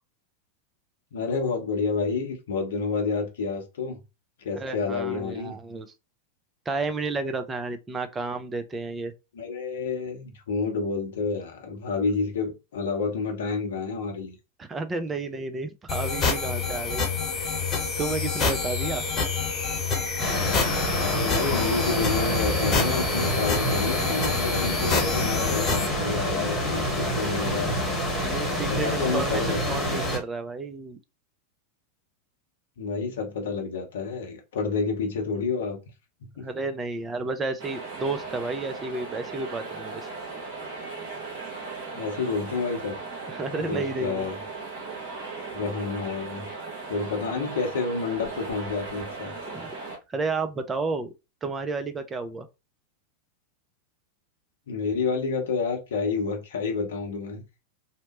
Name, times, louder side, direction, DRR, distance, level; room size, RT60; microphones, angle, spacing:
voice 1, 1.1-4.0 4.4-5.6 9.3-14.4 21.0-27.8 28.7-29.8 32.8-35.8 36.4-36.5 41.9-43.0 43.5-44.4 45.5-46.5 46.9-49.3 54.7-57.4, left 4 dB, 60° left, 0.7 m, -29 dB
voice 2, 4.5-5.9 6.7-9.1 14.6-17.1 17.3-17.5 18.0-19.1 28.2-31.0 36.4-40.1 43.3-44.3 49.3-49.7 50.1-51.1 51.4-52.5, right 3 dB, 20° right, 0.4 m, -31 dB
sound 1, 15.9-25.9, left 4 dB, 25° left, 1.0 m, -27 dB
sound 2, 20.2-30.2, equal, 5° left, 1.2 m, -27 dB
sound 3, 37.6-50.0, right 3 dB, 55° right, 1.0 m, -37 dB
2.8 x 2.1 x 2.9 m
figure-of-eight pair, 90°, 0 cm